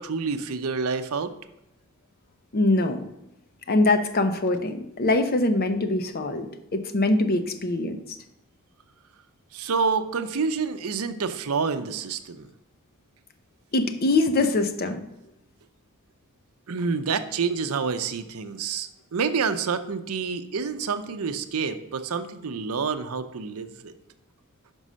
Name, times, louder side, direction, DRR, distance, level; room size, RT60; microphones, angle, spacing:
voice 1, 0.0-1.3 9.5-12.5 16.7-23.9, right 5 dB, 80° right, 9 dB, 0.6 m, -28 dB
voice 2, 2.5-3.0 3.7-8.0 13.7-15.0, left 2 dB, 45° left, 8 dB, 0.7 m, -23 dB
5.4 x 5.4 x 6.2 m, 0.86 s
head